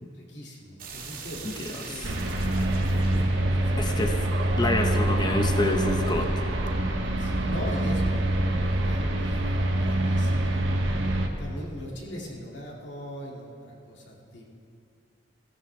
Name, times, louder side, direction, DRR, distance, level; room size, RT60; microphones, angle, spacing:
voice 1, 0.1-4.2 6.8-10.6 11.4-14.4, equal, 70° left, -2 dB, 2.4 m, -41 dB
sound 1, 0.8-5.5, right 4 dB, 50° right, 2.1 m, -42 dB
voice 2, 1.4-2.1 3.8-4.2 4.6-6.3, left 1 dB, 25° left, 4 dB, 0.9 m, -28 dB
sound 2, 2.0-11.3, right 1 dB, 90° right, 1.2 m, -25 dB
17.0 x 15.0 x 3.4 m, 2.5 s
head